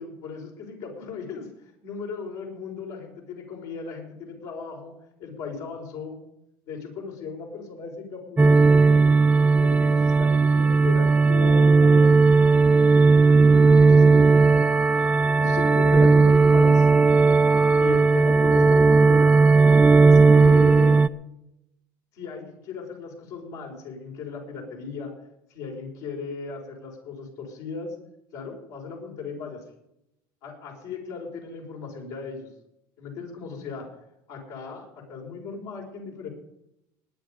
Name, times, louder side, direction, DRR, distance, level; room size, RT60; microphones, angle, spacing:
voice 1, 0.0-1.5 1.8-4.9 5.2-6.2 6.7-9.0 9.6-12.2 13.2-14.7 15.4-16.9 17.8-19.3 20.0-21.0 22.1-25.1 25.5-27.9 28.3-29.6 30.4-32.5 33.0-33.9 34.3-36.3, left 5 dB, 80° left, -1 dB, 5.4 m, -37 dB
sound 1, 8.4-21.1, right 4 dB, 15° right, 0.4 m, -16 dB
19.5 x 9.6 x 5.2 m, 0.83 s
supercardioid pair, 100°, 10 cm